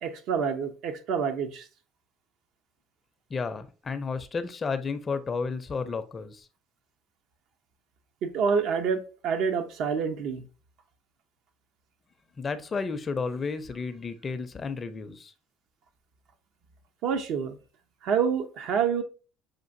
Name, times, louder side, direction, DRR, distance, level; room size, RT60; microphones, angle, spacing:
voice 1, 0.0-1.6 8.2-10.4 17.0-17.6 18.0-19.0, right 6 dB, 65° right, 0.6 m, -27 dB
voice 2, 3.3-6.5 12.4-15.3, left 4 dB, 30° left, 0.5 m, -32 dB
6.5 x 2.5 x 2.6 m
supercardioid pair, 85°, 0 cm